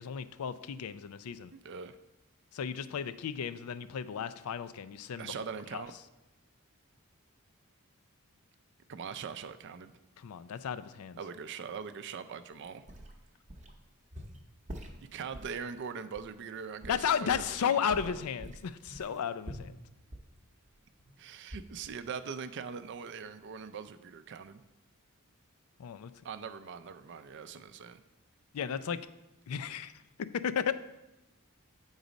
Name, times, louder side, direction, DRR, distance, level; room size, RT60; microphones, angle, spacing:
voice 1, 0.0-1.5 2.5-5.3 5.7-5.8 10.2-11.2 16.9-19.7 25.8-26.1 28.5-29.0 29.5-29.9 30.3-30.7, left 7 dB, 80° left, 13 dB, 0.4 m, -34 dB
voice 2, 1.5-2.0 5.2-5.9 8.9-9.9 11.2-12.8 15.1-18.2 21.2-24.6 26.2-28.0, right 6 dB, 55° right, 10 dB, 0.4 m, -42 dB
sound 1, 12.6-13.8 14.1-15.6 16.1-16.3 16.8-17.6 17.9-21.1 21.5-21.9 22.2-22.3, equal, 35° right, 0.8 m, -46 dB
8.0 x 4.0 x 5.1 m, 0.98 s
head